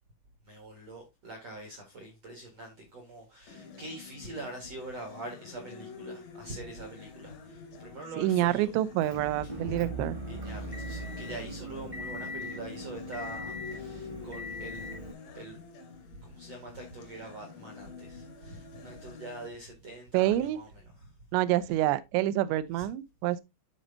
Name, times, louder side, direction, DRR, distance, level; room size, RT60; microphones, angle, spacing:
voice 1, 0.4-8.7 9.4-9.5 10.2-14.9 15.3-15.6 16.1-20.7 21.0-21.1 22.7-22.9, right 2 dB, 70° right, 1.5 m, -44 dB
sound 1, 3.5-19.5, left 5 dB, 80° left, 1.5 m, -48 dB
voice 2, 8.2-10.2 20.1-20.6 21.3-23.4, right 14 dB, 85° right, 2.5 m, -27 dB
Motor vehicle (road) / Engine, 9.0-15.1, left 1 dB, 25° right, 0.8 m, -39 dB
12.5 x 4.3 x 2.7 m
omnidirectional pair, 5.7 m